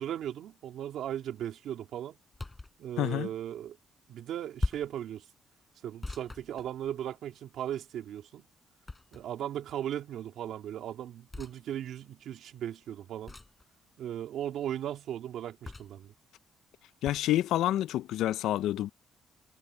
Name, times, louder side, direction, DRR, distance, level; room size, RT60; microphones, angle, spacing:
voice 1, 0.0-2.2 2.8-3.8 4.1-5.2 5.8-8.4 9.1-13.3 14.0-16.1, right 11 dB, 75° right, 2.8 m, -37 dB
sound 1, 2.3-2.8 4.6-5.0 6.0-7.2 8.9-9.5 11.3-11.6 13.3-13.6 15.6-16.1 17.0-17.3, left 2 dB, 20° left, 6.1 m, -38 dB
voice 2, 3.0-3.3 17.0-18.9, left 13 dB, 85° left, 0.5 m, -28 dB
cardioid pair, 90°, 0 cm